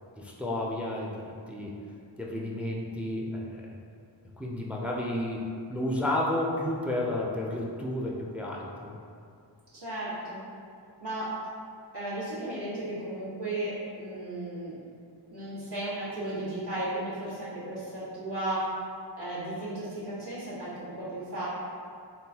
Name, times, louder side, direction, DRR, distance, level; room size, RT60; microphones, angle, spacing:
voice 1, 0.2-1.2 1.5-1.7 2.2-3.7 4.4-9.0, left 1 dB, 5° right, -2 dB, 0.3 m, -31 dB
voice 2, 9.7-10.4 11.0-11.3 11.9-14.7 15.3-18.7 19.2-21.5, right 1 dB, 60° right, -11 dB, 1.5 m, -35 dB
3.6 x 2.3 x 2.7 m, 2.4 s
cardioid pair, 50°, 45 cm